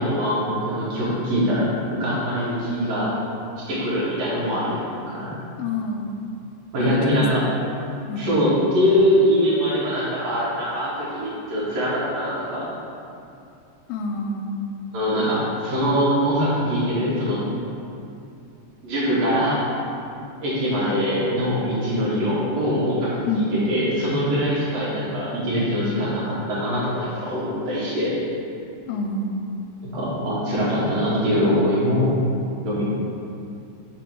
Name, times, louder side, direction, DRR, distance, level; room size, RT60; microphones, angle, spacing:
voice 1, 0.0-3.1 3.7-5.4 6.7-7.4 8.2-12.7 14.9-17.4 18.8-19.6 20.4-28.1 29.8-32.1 32.6-32.8, equal, 80° right, -8 dB, 1.4 m, -23 dB
voice 2, 5.6-6.2 6.8-7.2 8.1-8.4 13.9-14.7 23.3-23.5 28.9-29.7, left 2 dB, 90° left, 2 dB, 2.8 m, -28 dB
5.5 x 4.2 x 6.1 m, 2.6 s
omnidirectional pair, 4.9 m